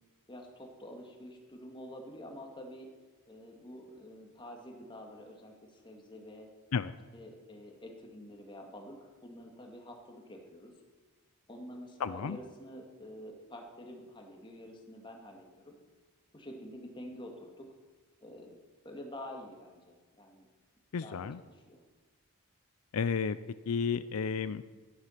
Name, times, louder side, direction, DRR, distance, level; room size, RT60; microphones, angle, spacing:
voice 1, 0.3-2.9 3.3-6.5 7.1-10.7 11.5-15.8 16.3-17.7 18.2-18.5 18.8-20.5 21.0-21.8, left 1 dB, 20° left, 2 dB, 2.2 m, -48 dB
voice 2, 12.0-12.4 20.9-21.4 22.9-23.4 23.7-24.6, left 6 dB, 80° left, 14 dB, 0.5 m, -32 dB
12.5 x 11.5 x 5.8 m, 1.4 s
head